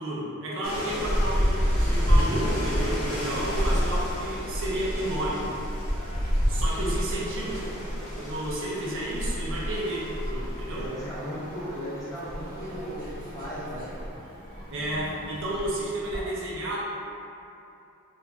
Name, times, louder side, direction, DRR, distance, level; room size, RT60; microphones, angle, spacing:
voice 1, 0.0-5.7 6.5-10.9 14.7-16.8, right 1 dB, 65° right, -6 dB, 0.6 m, -32 dB
sound 1, 0.6-10.9, left 1 dB, 85° left, 0.7 m, -38 dB
sound 2, 0.6-16.2, equal, 45° right, 1.0 m, -29 dB
voice 2, 10.7-13.9, equal, 15° left, -11 dB, 0.9 m, -36 dB
3.0 x 2.4 x 3.4 m, 2.8 s
head